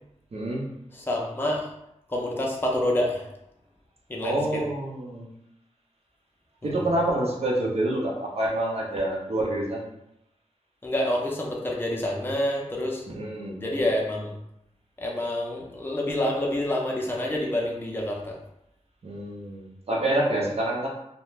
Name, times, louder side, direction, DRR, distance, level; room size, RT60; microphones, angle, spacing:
voice 1, 0.3-0.6 4.2-5.3 6.6-9.8 13.1-13.6 19.0-20.9, right 1 dB, 55° right, -1 dB, 0.6 m, -27 dB
voice 2, 0.9-1.7 2.1-3.3 4.1-4.6 6.6-6.9 10.8-13.0 13.6-14.4 15.0-18.4, left 1 dB, 15° left, -2 dB, 0.5 m, -27 dB
2.4 x 2.1 x 3.1 m, 0.82 s
wide cardioid pair, 90°, 12 cm